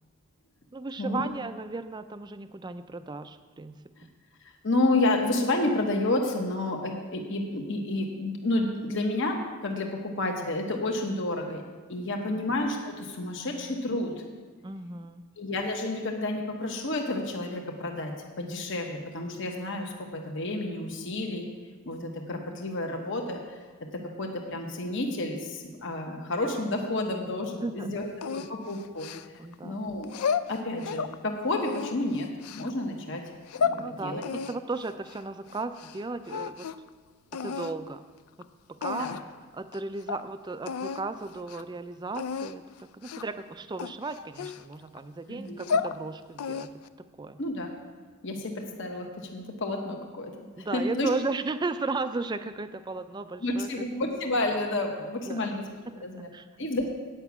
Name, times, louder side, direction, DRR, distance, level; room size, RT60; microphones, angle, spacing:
voice 1, 0.7-4.1 12.1-12.2 14.6-15.2 27.6-28.0 29.4-29.9 33.8-36.7 37.4-38.0 38.7-39.2 39.5-46.7 47.2-47.4 50.6-53.7 55.3-55.5 56.0-56.1 56.3-56.5, right 3 dB, 20° right, 11 dB, 0.4 m, -35 dB
voice 2, 4.6-11.6 11.9-14.1 15.4-21.5 21.8-23.4 23.9-28.1 28.3-29.1 29.6-30.1 30.5-32.3 32.5-33.2 33.5-34.2 39.0-39.1 45.3-45.7 47.4-47.7 48.2-51.1 53.4-56.3 56.6-56.9, left 2 dB, 60° left, 2 dB, 1.0 m, -30 dB
sound 1, 28.2-29.5 30.0-31.2 31.6-32.7 33.3-33.8 34.2-36.0 36.2-36.9 37.3-37.7 38.4-38.5 38.8-39.3 39.7-39.8 40.1-40.2 40.6-41.0 41.4-41.6 42.1-42.5 43.0-43.4 43.8-45.0 45.4-46.0 46.4-46.9, left 6 dB, 90° left, 0.4 m, -32 dB
8.9 x 5.9 x 8.2 m, 1.4 s
head